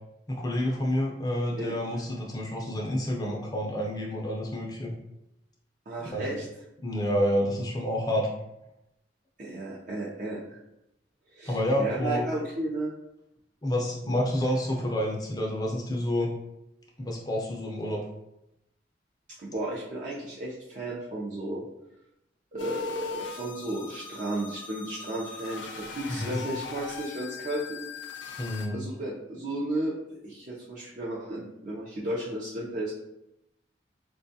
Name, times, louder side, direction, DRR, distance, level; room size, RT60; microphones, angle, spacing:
voice 1, 0.3-4.9 6.0-6.4 6.8-8.3 11.5-12.3 13.6-16.3 17.0-18.0 26.2-26.4 28.4-28.8, equal, 20° left, -2 dB, 0.5 m, -29 dB
voice 2, 5.9-6.5 9.4-10.6 11.3-12.9 19.4-21.6 22.5-27.8 28.3-28.4 28.7-29.9 30.2-32.9, right 1 dB, 45° right, -7 dB, 0.6 m, -34 dB
sound 1, 22.6-28.7, left 5 dB, 80° left, 0.4 m, -40 dB
4.4 x 2.3 x 2.7 m, 0.85 s
head